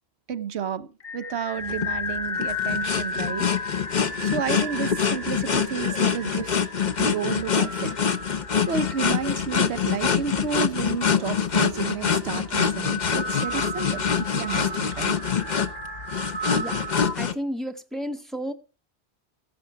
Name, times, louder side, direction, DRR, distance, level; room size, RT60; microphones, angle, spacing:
voice 1, 0.3-3.5 4.0-6.5 7.0-7.9 8.7-15.1, right 6 dB, 90° right, 1.2 m, -31 dB
sound 1, 1.0-17.2, left 2 dB, 65° left, 2.2 m, -35 dB
sound 2, 1.7-17.3, left 7 dB, 45° left, 0.9 m, -25 dB
voice 2, 17.1-18.5, equal, ahead, 1.2 m, -32 dB
14.0 x 11.0 x 4.6 m
omnidirectional pair, 1.1 m